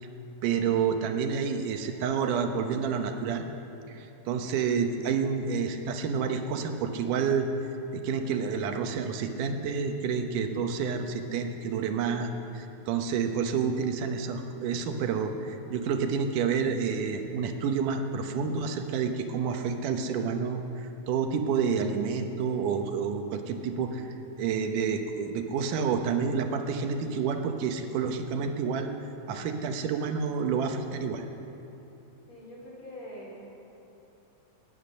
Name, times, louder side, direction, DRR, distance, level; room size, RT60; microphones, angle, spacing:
voice 1, 0.4-3.5 3.9-7.5 7.9-28.9 29.3-31.2, right 6 dB, 85° right, 5 dB, 2.5 m, -29 dB
voice 2, 32.3-33.4, equal, 40° left, -4 dB, 4.4 m, -44 dB
20.0 x 9.4 x 6.5 m, 3.0 s
omnidirectional pair, 3.6 m